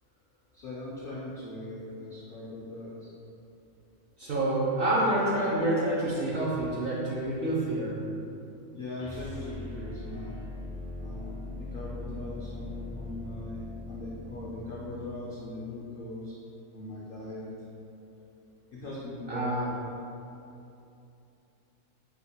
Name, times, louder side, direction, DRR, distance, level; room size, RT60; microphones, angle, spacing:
voice 1, 0.5-3.1 8.7-10.4 11.0-13.6 13.9-16.3 16.7-17.5 18.7-20.0, left 2 dB, 80° left, -6 dB, 0.5 m, -40 dB
voice 2, 4.2-7.9 19.3-19.7, right 1 dB, 60° right, -7 dB, 0.6 m, -27 dB
sound 1, 8.9-15.1, left 2 dB, 80° right, 1.9 m, -41 dB
4.6 x 3.5 x 2.2 m, 2.7 s
omnidirectional pair, 1.6 m